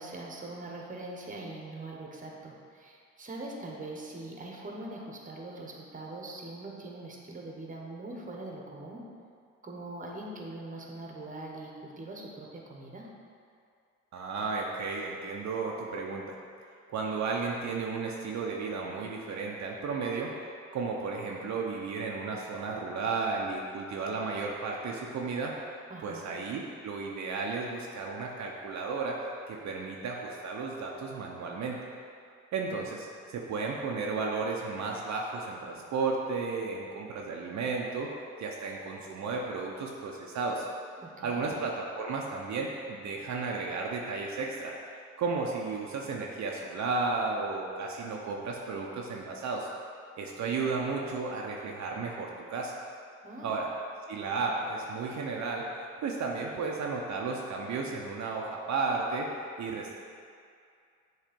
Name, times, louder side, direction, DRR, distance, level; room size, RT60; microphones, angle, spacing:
voice 1, 0.0-9.0 9.6-13.1 25.9-26.3 41.0-41.5 53.2-53.5, right 2 dB, 25° right, -1 dB, 1.1 m, -42 dB
voice 2, 14.1-16.4 16.9-20.3 20.7-25.5 26.0-29.2 29.5-31.7 32.5-38.1 38.4-40.7 41.2-44.7 45.2-49.7 50.2-52.8 53.4-53.7 54.1-59.3 59.6-60.0, right 4 dB, 65° right, -2 dB, 0.7 m, -33 dB
7.4 x 3.2 x 5.2 m, 2.4 s
cardioid pair, 90°, 30 cm